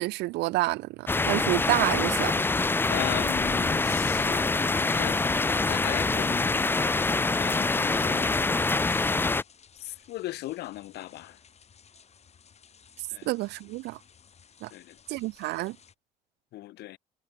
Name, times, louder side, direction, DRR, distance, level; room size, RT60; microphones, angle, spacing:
voice 1, 0.0-2.3 13.2-14.0 14.6-14.7 15.1-15.8, right 20 dB, 85° right, 1.0 m, -28 dB
sound 1, 1.1-9.4, left 3 dB, 10° left, 0.5 m, -25 dB
voice 2, 2.9-6.8 7.3-8.4 9.8-11.4 13.1-13.3 14.7-15.0 16.5-17.0, left 16 dB, 75° left, 1.5 m, -38 dB
sound 2, 4.0-15.9, left 7 dB, 40° left, 6.9 m, -57 dB
cardioid pair, 110°, 17 cm